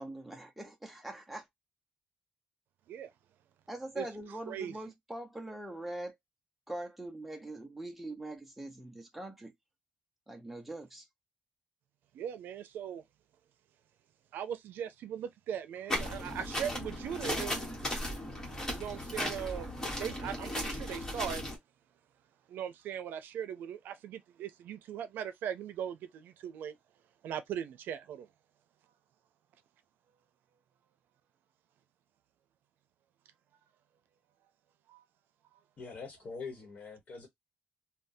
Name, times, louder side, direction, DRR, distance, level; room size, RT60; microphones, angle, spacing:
voice 1, 0.0-1.5 3.7-6.1 6.7-9.5 10.3-11.1, right 1 dB, 5° right, 0.8 m, -42 dB
voice 2, 12.1-13.0 14.3-17.6 18.7-21.4 22.5-26.7 27.2-28.3 34.9-35.0, right 9 dB, 90° right, 0.5 m, -39 dB
sound 1, 15.9-21.6, left 1 dB, 15° left, 1.3 m, -36 dB
voice 3, 35.8-37.3, left 4 dB, 45° left, 1.2 m, -43 dB
3.6 x 2.3 x 2.6 m
cardioid pair, 160°, 3 cm